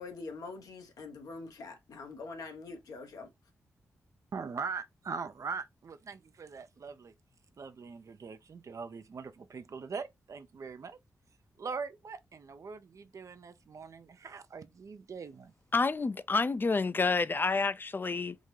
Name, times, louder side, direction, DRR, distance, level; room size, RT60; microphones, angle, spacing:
voice 1, 0.0-3.3, left 3 dB, 75° left, 0.9 m, -44 dB
voice 2, 4.3-7.1 7.6-11.0 11.6-15.5, right 5 dB, 60° right, 0.5 m, -41 dB
voice 3, 15.7-18.4, left 4 dB, 35° left, 0.4 m, -29 dB
3.6 x 2.7 x 3.1 m
supercardioid pair, 40°, 6 cm